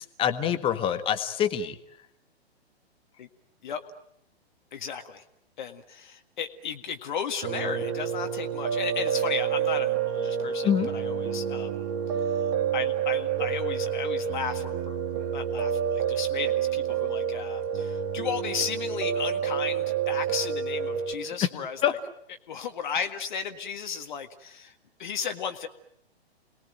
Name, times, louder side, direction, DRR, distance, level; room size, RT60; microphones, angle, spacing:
voice 1, 0.0-1.8 10.6-10.9 21.8-21.9, left 9 dB, 15° left, 10 dB, 1.7 m, -25 dB
voice 2, 4.7-5.2 5.6-11.8 12.2-22.0 22.5-24.7 25.0-25.7, left 7 dB, 45° left, 6 dB, 2.0 m, -35 dB
Piano, 7.4-21.1, right 8 dB, 30° right, 2.2 m, -28 dB
29.5 x 21.0 x 9.1 m, 0.74 s
figure-of-eight pair, 120°, 32 cm